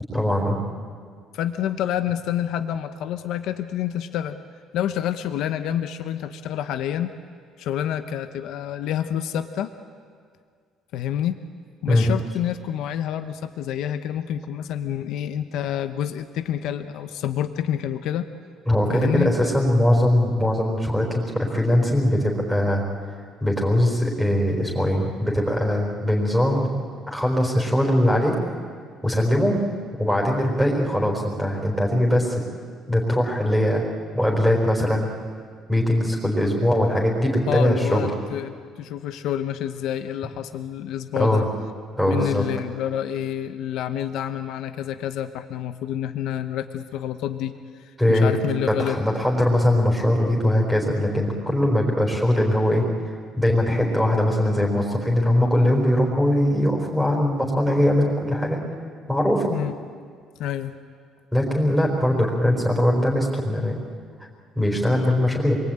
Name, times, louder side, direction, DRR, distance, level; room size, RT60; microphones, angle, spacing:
voice 1, 0.1-0.6 11.9-12.1 18.7-22.8 23.4-26.7 27.1-28.4 29.0-29.6 30.0-32.3 32.9-33.8 34.1-35.1 35.7-38.1 41.2-41.5 42.0-42.5 48.0-48.3 48.7-58.6 59.1-59.5 61.3-63.8 64.6-65.6, left 1 dB, ahead, -1 dB, 4.1 m, -21 dB
voice 2, 1.3-4.4 4.7-7.1 7.6-9.7 10.9-11.4 11.8-18.3 18.9-19.4 37.5-41.4 42.0-47.5 47.8-49.0 59.5-59.7 60.4-60.7, left 10 dB, 65° left, 9 dB, 1.0 m, -28 dB
27.0 x 23.0 x 8.9 m, 2.1 s
cardioid pair, 170°, 0 cm